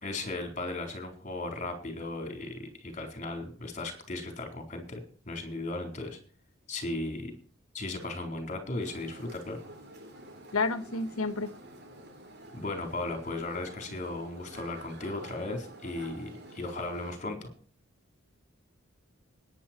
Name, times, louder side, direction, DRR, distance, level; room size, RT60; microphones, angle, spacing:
voice 1, 0.0-5.0 5.3-6.2 6.7-7.3 7.7-9.6 12.5-17.5, left 2 dB, 35° left, 5 dB, 4.2 m, -36 dB
sound 1, 8.8-17.2, right 1 dB, 50° right, 3.4 m, -49 dB
voice 2, 10.5-11.5, left 3 dB, 80° left, 12 dB, 1.2 m, -30 dB
19.5 x 10.0 x 4.5 m, 0.43 s
head